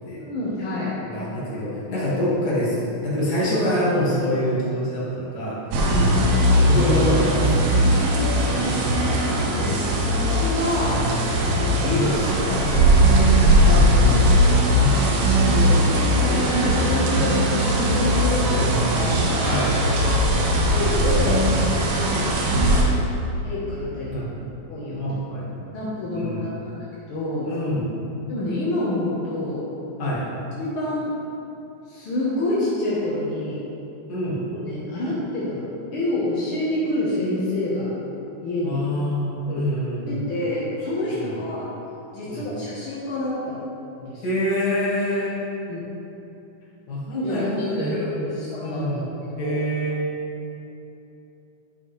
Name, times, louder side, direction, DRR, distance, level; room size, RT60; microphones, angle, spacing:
voice 1, 0.2-0.9 5.8-6.2 10.2-11.1 11.5-13.8 14.8-14.9 15.4-19.5 20.5-21.4 22.6-24.2 24.7-25.1 25.7-27.5 28.3-29.7 30.6-31.1 31.9-33.6 34.6-37.9 38.4-38.8 39.5-39.6 40.1-41.6 42.1-43.6 44.0-44.2 45.6-45.8 47.1-49.1 49.4-49.6, left 1 dB, 75° left, -8 dB, 1.2 m, -28 dB
voice 2, 1.0-2.8 3.0-5.7 6.6-8.0 8.4-9.7 11.9-12.1 13.7-15.3 19.4-19.7 22.0-22.3 24.1-24.4 25.0-25.8 26.1-26.5 27.4-27.9 30.0-30.3 34.1-34.4 38.6-40.1 41.1-41.3 42.3-42.5 44.2-45.4 46.9-48.2 48.6-49.0 49.4-50.1, equal, 40° left, -8 dB, 1.7 m, -26 dB
sound 1, 5.7-22.8, equal, 85° right, 2.8 m, -19 dB
10.0 x 5.6 x 3.2 m, 2.9 s
omnidirectional pair, 4.2 m